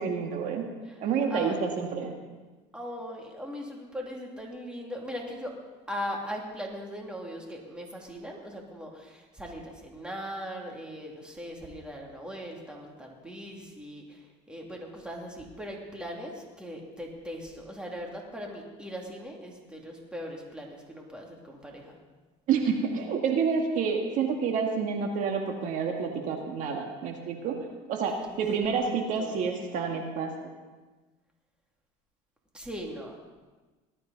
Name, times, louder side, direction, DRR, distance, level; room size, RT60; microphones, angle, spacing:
voice 1, 0.0-0.7 1.0-2.1 22.5-27.6 27.9-28.1 28.4-30.3, right 6 dB, 60° right, 3 dB, 1.9 m, -28 dB
voice 2, 2.7-5.5 5.9-22.0 28.1-28.2 29.2-29.5 32.5-33.1, equal, 5° right, 0 dB, 2.6 m, -39 dB
19.0 x 12.0 x 4.0 m, 1.3 s
supercardioid pair, 110°, 15 cm